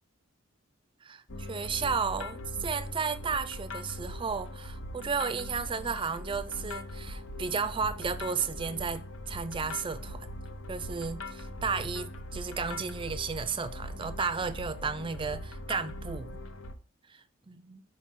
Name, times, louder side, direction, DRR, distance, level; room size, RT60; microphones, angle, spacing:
voice 1, 1.0-10.3 10.7-16.4 17.1-17.8, right 5 dB, 25° right, 0.5 m, -33 dB
sound 1, 1.3-16.7, left 1 dB, 75° left, 0.9 m, -41 dB
5.9 x 4.9 x 3.6 m
head